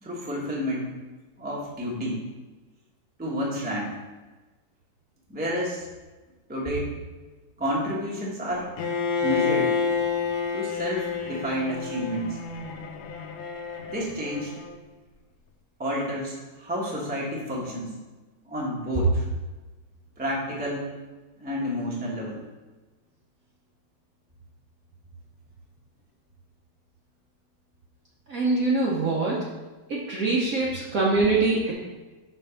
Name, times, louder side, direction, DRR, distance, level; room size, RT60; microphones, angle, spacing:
voice 1, 0.0-0.9 1.4-2.2 3.2-3.9 5.3-5.8 6.5-7.0 7.6-8.7 9.2-9.7 10.5-12.4 13.9-14.5 15.8-17.9 18.5-19.2 20.2-20.9 21.4-22.4, equal, 5° right, -4 dB, 0.8 m, -29 dB
Bowed string instrument, 8.8-14.7, left 5 dB, 75° left, 0.9 m, -29 dB
voice 2, 28.3-29.4 29.9-31.7, right 3 dB, 55° right, -4 dB, 1.0 m, -24 dB
5.9 x 3.5 x 5.6 m, 1.2 s
omnidirectional pair, 2.2 m